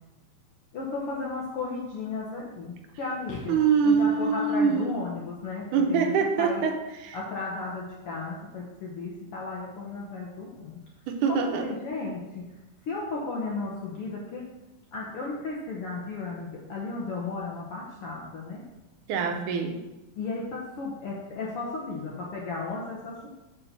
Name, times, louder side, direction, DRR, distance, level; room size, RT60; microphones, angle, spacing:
voice 1, 0.7-6.6 7.1-10.8 11.3-12.5 12.9-14.4 14.9-18.6 20.2-23.3, left 3 dB, 65° left, -3 dB, 1.4 m, -34 dB
voice 2, 3.5-5.0 5.7-7.2 11.1-11.7 19.1-19.8, right 5 dB, 80° right, 4 dB, 2.3 m, -24 dB
5.5 x 5.3 x 6.6 m, 1.0 s
omnidirectional pair, 3.7 m